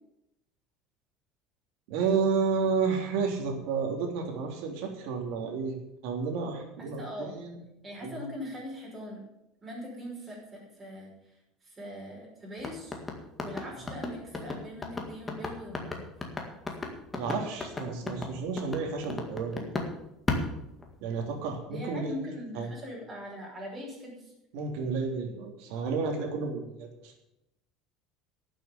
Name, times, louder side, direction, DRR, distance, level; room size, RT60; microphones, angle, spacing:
voice 1, 1.9-5.8 6.0-7.6 8.0-8.3 17.1-19.7 21.0-22.7 24.5-27.1, right 5 dB, 70° right, 2 dB, 3.1 m, -31 dB
voice 2, 6.8-7.4 7.8-9.3 9.6-11.3 11.6-13.0 13.4-16.1 21.7-24.3, left 1 dB, 15° right, -5 dB, 5.6 m, -41 dB
sound 1, 12.6-19.9 20.3-21.3, left 3 dB, 15° left, 1.9 m, -34 dB
12.5 x 7.6 x 8.9 m, 0.86 s
cardioid pair, 160°, 0 cm